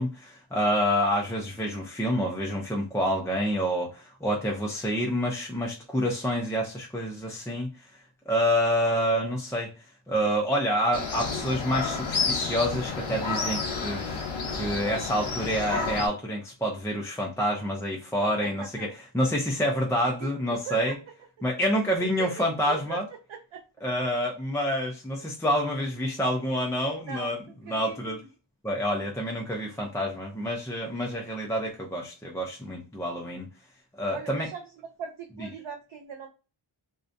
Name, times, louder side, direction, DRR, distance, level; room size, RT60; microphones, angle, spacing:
voice 1, 0.0-7.9 8.3-9.7 10.1-21.0 21.4-23.0 23.8-27.4 27.7-28.2 28.6-33.5 33.9-34.5, equal, 5° left, 0.4 m, -28 dB
sound 1, 10.9-16.1, left 4 dB, 75° left, 0.8 m, -30 dB
voice 2, 18.4-18.9 20.2-21.0 22.0-23.0 23.3-23.6 27.0-28.3 34.1-34.6 35.0-36.3, right 7 dB, 75° right, 0.5 m, -40 dB
2.5 x 2.1 x 2.5 m
wide cardioid pair, 105°, 48 cm